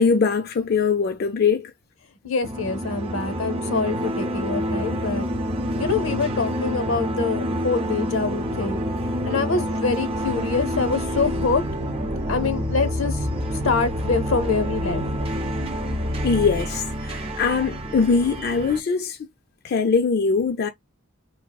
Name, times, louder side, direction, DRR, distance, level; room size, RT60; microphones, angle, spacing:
voice 1, 0.0-1.7 16.2-16.8 17.1-19.2 19.6-20.7, left 5 dB, 50° left, 0.4 m, -21 dB
voice 2, 2.2-5.3 5.8-8.8 9.2-11.6 12.3-13.1 13.6-15.0, left 4 dB, 80° left, 0.7 m, -25 dB
sound 1, 2.4-18.8, equal, 30° right, 0.5 m, -27 dB
3.5 x 2.4 x 2.2 m
head